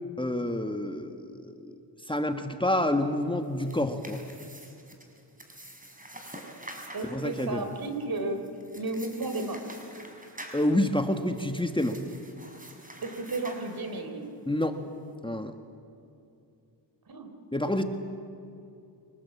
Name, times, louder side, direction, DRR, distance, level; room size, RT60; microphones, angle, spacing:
voice 1, 0.2-1.6 2.1-4.2 7.0-7.6 10.5-12.0 14.5-14.8 15.2-15.5 17.5-17.8, left 1 dB, 10° left, 6 dB, 1.6 m, -28 dB
sound 1, 3.4-14.3, right 1 dB, 20° right, 4.9 m, -47 dB
voice 2, 6.9-8.4 8.8-9.6 13.0-14.2 17.1-17.3, right 2 dB, 55° right, 7 dB, 3.9 m, -33 dB
25.0 x 19.5 x 8.5 m, 2.6 s
cardioid pair, 65°, 44 cm